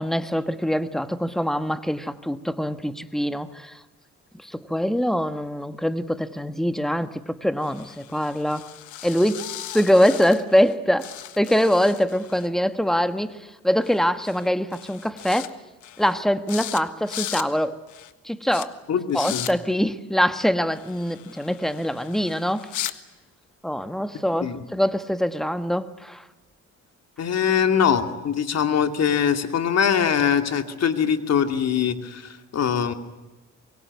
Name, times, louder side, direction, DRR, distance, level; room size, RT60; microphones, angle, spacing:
voice 1, 0.0-3.8 4.4-8.7 9.0-9.5 9.7-11.1 11.4-15.6 16.0-17.8 18.2-18.8 19.1-22.7 23.6-26.2, equal, ahead, 1.6 m, -23 dB
sound 1, 7.6-10.7 11.0-12.5 13.8-14.0 14.2-14.5 14.7-15.5 15.8-16.2 16.5-16.8 17.1-17.5 17.9-18.1 18.5-18.7 19.1-19.5 20.7-23.0, left 12 dB, 75° left, 1.6 m, -37 dB
voice 2, 18.9-19.5 24.4-24.6 27.2-32.9, left 7 dB, 55° left, 2.7 m, -22 dB
25.5 x 22.5 x 9.6 m
cardioid pair, 90°, 30 cm